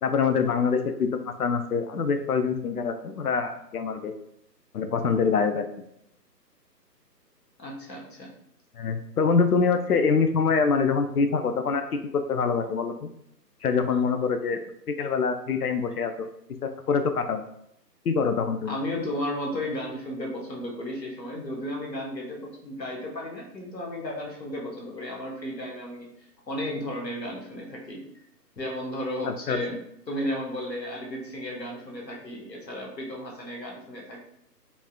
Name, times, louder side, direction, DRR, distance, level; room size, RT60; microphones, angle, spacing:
voice 1, 0.0-4.1 4.7-5.6 8.7-11.8 12.1-13.1 13.6-14.6 14.9-16.3 16.6-17.4 18.1-18.7 29.2-29.6, left 5 dB, 65° left, 7 dB, 0.5 m, -25 dB
voice 2, 7.6-8.3 18.6-28.0 28.6-29.8 30.1-34.2, left 1 dB, 80° left, -1 dB, 1.3 m, -34 dB
3.9 x 2.5 x 2.2 m, 0.74 s
figure-of-eight pair, 145°, 50 cm